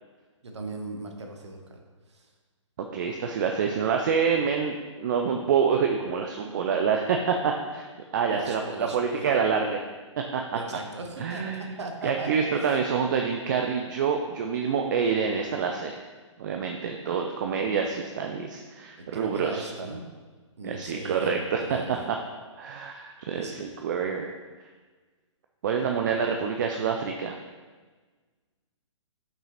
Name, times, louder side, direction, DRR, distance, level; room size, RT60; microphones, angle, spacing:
voice 1, 0.4-1.8 2.1-2.3 8.3-9.3 10.5-12.6 19.0-20.0 20.6-22.0 23.3-23.6, right 2 dB, 60° right, 3 dB, 1.1 m, -38 dB
voice 2, 2.8-7.9 8.1-9.8 10.3-10.6 11.2-11.7 12.0-16.0 16.4-19.7 20.6-22.2 22.6-24.3 25.6-27.4, right 6 dB, 40° right, 3 dB, 0.5 m, -27 dB
5.7 x 5.4 x 3.9 m, 1.4 s
figure-of-eight pair, 125°, 16 cm